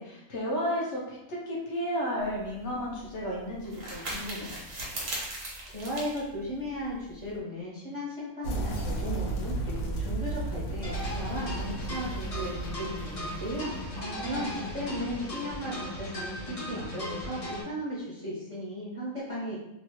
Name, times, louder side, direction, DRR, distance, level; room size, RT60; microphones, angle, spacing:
voice 1, 0.0-4.5 14.0-14.5, equal, 60° left, -4 dB, 1.0 m, -33 dB
sound 1, 2.2-7.4, right 1 dB, 70° right, 1.2 m, -40 dB
voice 2, 5.7-19.6, equal, 35° right, -8 dB, 0.6 m, -36 dB
sound 2, 8.4-16.2, right 2 dB, 85° left, 1.0 m, -35 dB
sound 3, 10.8-17.6, left 1 dB, 35° left, 0.6 m, -37 dB
3.0 x 2.3 x 2.9 m, 0.86 s
omnidirectional pair, 1.4 m